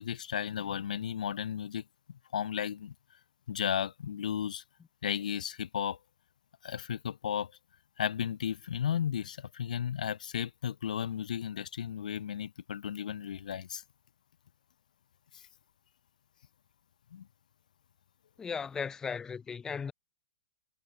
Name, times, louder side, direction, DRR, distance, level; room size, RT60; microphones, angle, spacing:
voice 1, 0.0-1.8 2.1-2.9 3.5-4.6 5.0-6.0 6.6-7.5 8.0-13.8 17.1-17.3, left 9 dB, 80° left, 0.6 m, -34 dB
voice 2, 18.4-19.9, left 6 dB, 15° left, 1.3 m, -36 dB
hypercardioid pair, 135°, 4 cm